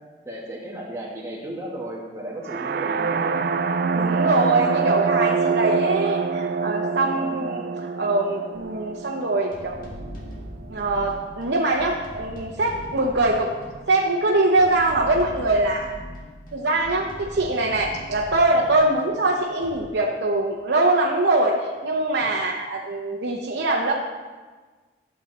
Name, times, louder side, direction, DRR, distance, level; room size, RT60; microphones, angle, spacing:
voice 1, 0.2-3.4 4.3-4.4 7.0-7.6, right 1 dB, 15° right, -4 dB, 1.9 m, -35 dB
sound 1, 2.4-10.3, right 5 dB, 55° right, 0.3 m, -25 dB
voice 2, 3.9-7.6 8.0-9.8 10.7-13.5 13.9-15.9 16.5-23.9, right 2 dB, 75° right, -2 dB, 0.8 m, -23 dB
sound 2, 8.5-8.6 9.5-19.8, equal, 50° left, 2.0 m, -40 dB
12.0 x 7.3 x 4.2 m, 1.4 s
head